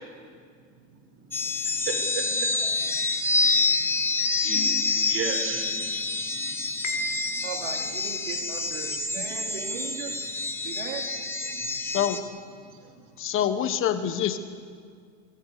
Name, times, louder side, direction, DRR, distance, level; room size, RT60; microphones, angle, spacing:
sound 1, 1.3-12.2, left 3 dB, 5° left, 1.7 m, -27 dB
voice 1, 1.3-3.8 4.1-4.7 5.0-6.6 6.9-7.0 7.3-7.4 9.2-9.8 10.4-10.5 11.3-11.9 12.7-12.9, right 4 dB, 35° right, 4 dB, 5.6 m, -37 dB
Piano, 6.8-7.9, equal, 85° left, 3.3 m, -33 dB
voice 2, 7.4-10.1 10.6-11.0, right 6 dB, 80° right, 1 dB, 4.1 m, -38 dB
voice 3, 11.8-12.2 13.2-14.4, left 9 dB, 30° left, 10 dB, 1.3 m, -26 dB
24.5 x 16.5 x 8.3 m, 2.1 s
supercardioid pair, 130°, 39 cm